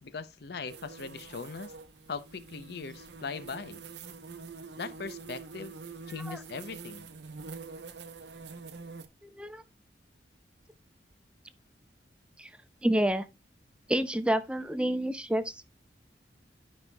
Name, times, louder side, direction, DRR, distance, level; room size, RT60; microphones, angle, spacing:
voice 1, 0.0-1.7 2.1-3.8 4.8-5.7 6.1-7.1, left 4 dB, 60° left, 0.6 m, -40 dB
sound 1, 0.7-9.1, right 5 dB, 75° right, 0.8 m, -46 dB
voice 2, 9.2-9.6 12.4-12.5 12.8-13.3 13.9-15.7, right 1 dB, 5° right, 0.5 m, -29 dB
12.5 x 5.4 x 2.2 m
head